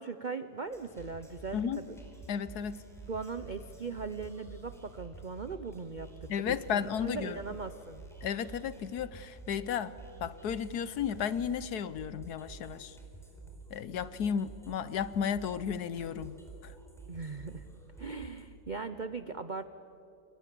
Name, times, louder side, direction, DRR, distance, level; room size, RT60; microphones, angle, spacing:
voice 1, 0.0-2.0 3.1-8.0 17.1-17.6 18.0-19.6, right 4 dB, 85° right, 11 dB, 0.4 m, -39 dB
sound 1, 0.7-18.4, right 3 dB, ahead, 4.2 m, -50 dB
voice 2, 1.5-1.8 2.3-2.8 6.3-7.4 8.2-9.9 10.2-13.0 13.7-16.4 16.6-16.7, left 8 dB, 65° left, 16 dB, 1.2 m, -33 dB
29.0 x 24.0 x 7.7 m, 2.9 s
omnidirectional pair, 2.0 m